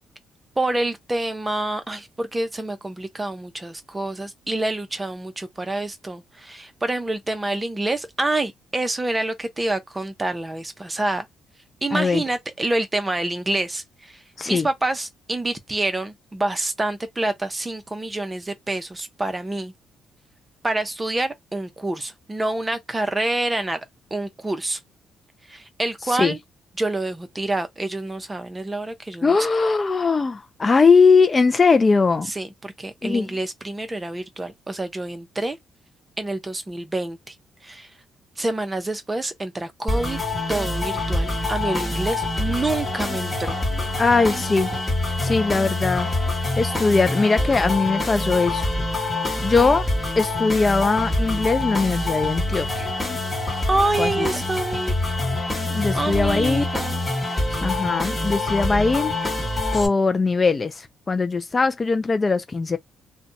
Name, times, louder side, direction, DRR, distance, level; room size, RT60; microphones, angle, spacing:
voice 1, 0.6-11.3 11.8-19.7 20.6-23.9 24.1-24.8 25.5-26.4 26.8-29.5 32.3-35.6 36.2-37.3 37.6-37.9 38.4-40.2 40.5-43.6 53.7-55.0 55.9-57.0, right 2 dB, 20° right, 0.7 m, -27 dB
voice 2, 11.9-12.2 14.4-14.7 26.1-26.4 29.2-32.3 33.0-33.3 44.0-44.7 45.2-46.1 46.6-48.7 49.4-49.9 50.2-52.9 54.0-54.3 55.7-56.6 57.6-59.1 59.7-62.8, left 4 dB, 30° left, 0.3 m, -20 dB
sound 1, 39.9-59.9, left 2 dB, 15° left, 1.3 m, -25 dB
2.5 x 2.2 x 2.6 m
cardioid pair, 90°, 0 cm